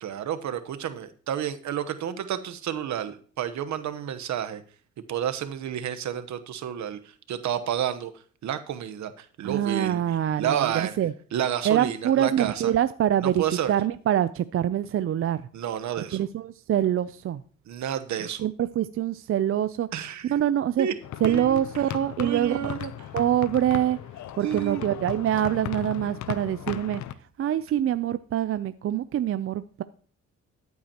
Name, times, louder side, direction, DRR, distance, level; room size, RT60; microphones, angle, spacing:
voice 1, 0.0-4.6 5.1-7.0 7.3-8.1 8.4-10.0 10.4-11.0 11.3-12.7 13.2-13.7 15.5-16.2 17.7-18.5 19.9-20.3 20.8-20.9 21.2-21.6 22.2-22.9 24.4-24.8, right 10 dB, 70° right, 10 dB, 1.1 m, -30 dB
voice 2, 9.4-11.1 11.6-15.4 16.1-17.4 18.4-19.9 20.3-20.9 21.2-22.7 23.1-24.0 24.4-27.0 27.4-29.8, right 11 dB, 45° right, 13 dB, 0.5 m, -25 dB
sound 1, 21.0-27.1, left 11 dB, 70° left, 0.7 m, -37 dB
13.5 x 8.3 x 2.9 m, 0.43 s
cardioid pair, 90°, 30 cm